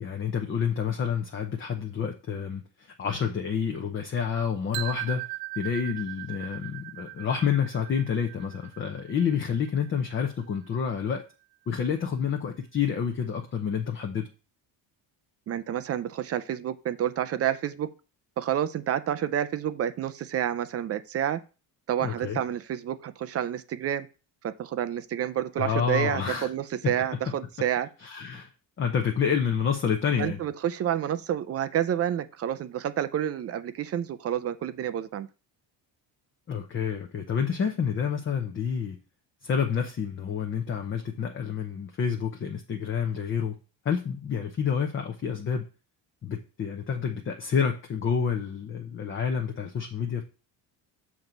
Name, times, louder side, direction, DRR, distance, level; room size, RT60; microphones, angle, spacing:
voice 1, 0.0-5.2 5.6-11.2 11.7-14.3 22.0-22.4 25.6-26.5 28.0-28.5 28.8-30.4 36.5-39.0 39.4-43.6 43.8-45.6 46.2-50.2, left 7 dB, 30° left, 0.7 m, -28 dB
sound 1, 4.7-10.7, right 21 dB, 80° right, 0.6 m, -39 dB
voice 2, 15.5-17.9 18.4-21.4 21.9-24.1 24.4-27.9 30.2-35.3, right 10 dB, 35° right, 0.4 m, -29 dB
7.3 x 4.6 x 3.9 m
cardioid pair, 145°, 44 cm